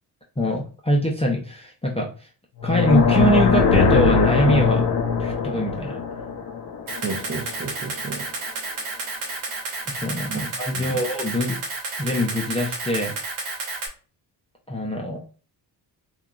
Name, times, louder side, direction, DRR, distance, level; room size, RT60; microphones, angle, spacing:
voice 1, 0.4-2.1 2.6-4.9 5.2-6.0 9.9-11.6 12.0-13.1 14.7-15.2, equal, 15° left, 0.5 m, -23 dB
sound 1, 2.6-7.7, left 5 dB, 55° left, 0.7 m, -21 dB
Camera, 6.9-13.9, right 3 dB, 80° right, 1.0 m, -31 dB
voice 2, 7.0-8.3 10.3-11.0, right 4 dB, 25° right, 0.6 m, -33 dB
2.9 x 2.3 x 2.3 m
supercardioid pair, 60°, 49 cm